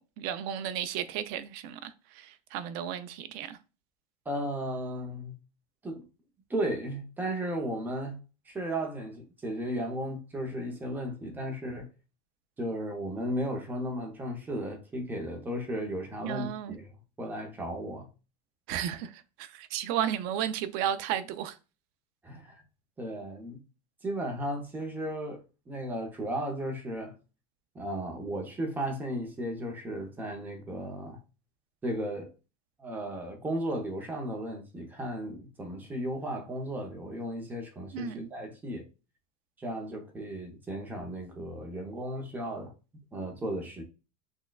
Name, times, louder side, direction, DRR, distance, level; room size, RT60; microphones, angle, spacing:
voice 1, 0.2-3.6 16.2-16.8 18.7-21.6 37.9-38.3, right 10 dB, 45° right, 0.4 m, -33 dB
voice 2, 4.3-5.3 5.8-6.1 6.5-8.2 8.5-11.9 12.6-16.9 17.2-18.1 22.2-22.6 23.0-23.6 24.0-27.2 27.7-31.2 31.8-32.3 32.8-38.8 39.6-42.7 43.1-43.8, right 1 dB, 10° right, 0.7 m, -35 dB
6.1 x 2.2 x 2.3 m
supercardioid pair, 165°, 21 cm